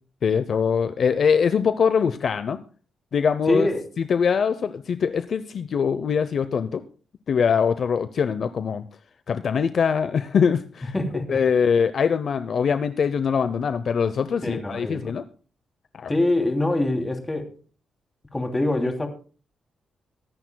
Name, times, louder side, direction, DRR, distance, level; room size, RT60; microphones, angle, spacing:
voice 1, 0.2-2.6 3.1-3.7 4.0-6.8 7.3-8.8 9.3-10.9 11.3-15.2 15.9-16.1, left 6 dB, 55° left, 12 dB, 0.7 m, -23 dB
voice 2, 3.5-3.8 10.9-11.4 14.4-15.1 16.1-17.5 18.3-19.1, left 2 dB, 15° left, 4 dB, 2.9 m, -24 dB
23.0 x 10.5 x 2.3 m, 0.39 s
cardioid pair, 115°, 0 cm